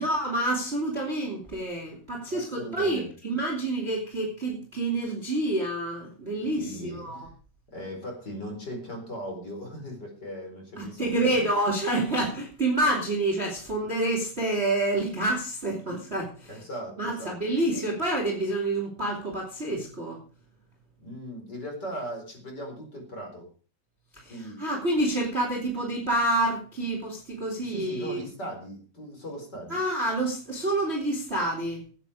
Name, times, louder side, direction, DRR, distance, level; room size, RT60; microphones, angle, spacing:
voice 1, 0.0-7.3 10.8-16.6 17.0-20.2 24.1-28.2 29.7-31.8, right 1 dB, 30° right, 0 dB, 1.1 m, -28 dB
voice 2, 2.3-3.1 6.5-7.3 7.7-11.3 16.5-17.3 21.0-23.5 24.3-24.6 27.6-29.8, equal, 20° left, 2 dB, 4.4 m, -38 dB
17.5 x 9.1 x 5.0 m, 0.39 s
omnidirectional pair, 5.9 m